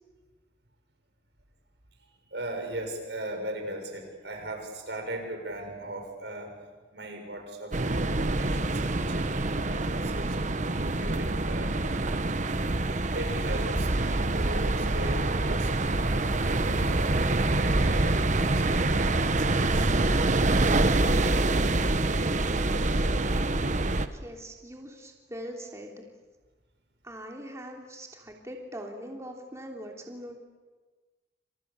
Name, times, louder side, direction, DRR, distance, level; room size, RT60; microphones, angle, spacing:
voice 1, 2.3-6.6 6.9-12.1 13.1-16.9 17.5-19.9 20.4-20.7 21.0-21.1, right 1 dB, 80° right, 4 dB, 6.7 m, -39 dB
sound 1, 7.7-24.1, right 2 dB, 45° right, 1.2 m, -26 dB
voice 2, 24.1-26.0 27.0-30.4, equal, 15° right, 1 dB, 3.1 m, -42 dB
29.5 x 26.5 x 7.0 m, 1.3 s
head